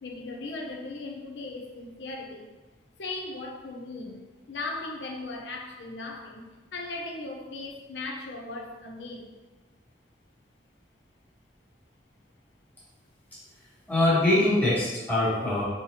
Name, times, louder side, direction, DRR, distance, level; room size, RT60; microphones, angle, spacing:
voice 1, 0.0-2.5 3.0-9.4, left 2 dB, 70° left, 0 dB, 0.6 m, -38 dB
voice 2, 13.9-15.6, left 1 dB, 10° left, -10 dB, 1.2 m, -23 dB
3.9 x 2.9 x 2.9 m, 1.2 s
head